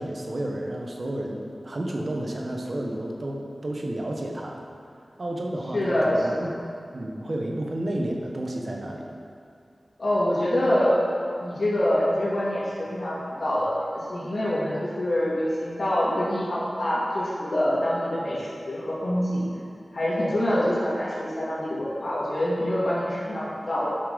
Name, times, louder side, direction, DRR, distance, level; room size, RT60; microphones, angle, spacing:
voice 1, 0.0-4.6 4.9-6.5 6.9-9.1, right 1 dB, 60° right, 0 dB, 1.2 m, -31 dB
voice 2, 5.7-6.3 10.0-11.0 11.4-19.5 19.9-23.9, left 1 dB, 60° left, -8 dB, 2.1 m, -25 dB
9.0 x 5.6 x 5.2 m, 2.4 s
cardioid pair, 40°, 0 cm